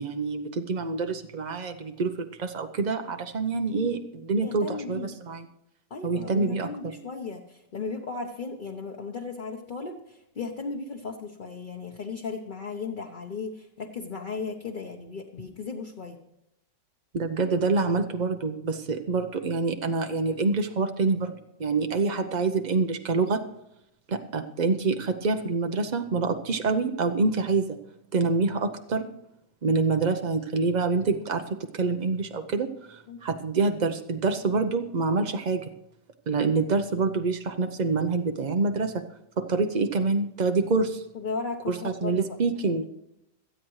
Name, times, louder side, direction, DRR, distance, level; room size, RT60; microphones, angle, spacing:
voice 1, 0.0-5.5 6.0-6.7 17.1-23.4 24.1-27.8 28.1-29.1 29.6-31.4 31.7-35.6 36.3-39.0 39.4-41.0 41.7-42.9, right 4 dB, 70° right, 6 dB, 0.4 m, -26 dB
voice 2, 4.4-5.2 5.9-16.2 33.1-33.2 41.1-42.4, left 4 dB, 35° left, 1 dB, 0.9 m, -36 dB
26.5 x 8.9 x 3.2 m, 0.83 s
omnidirectional pair, 1.9 m